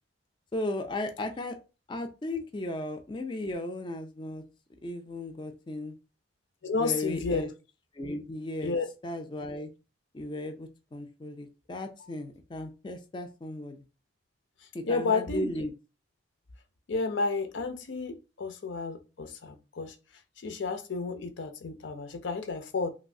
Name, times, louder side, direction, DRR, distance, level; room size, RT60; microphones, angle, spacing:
voice 1, 0.5-1.6 1.9-4.4 4.8-6.0 6.8-7.5 7.9-8.7 9.0-9.7 10.1-13.8 14.7-15.7, left 1 dB, 25° left, 0.3 m, -36 dB
voice 2, 6.6-7.5 8.6-8.9 14.8-15.5 16.9-20.0 20.4-22.9, left 4 dB, 80° left, 0.5 m, -31 dB
3.0 x 2.6 x 2.6 m
head